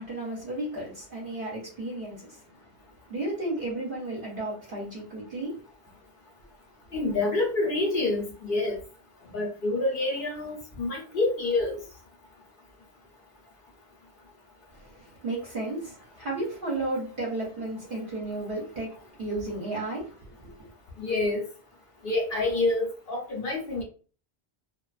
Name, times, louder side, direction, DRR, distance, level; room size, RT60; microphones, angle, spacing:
voice 1, 0.0-2.4 3.1-5.6 14.7-18.9 19.2-20.7, right 2 dB, 55° right, -4 dB, 0.9 m, -33 dB
voice 2, 6.9-8.8 9.2-11.8 21.0-21.4 22.0-23.8, left 2 dB, 55° left, -1 dB, 0.8 m, -27 dB
2.3 x 2.3 x 2.3 m, 0.39 s
omnidirectional pair, 1.1 m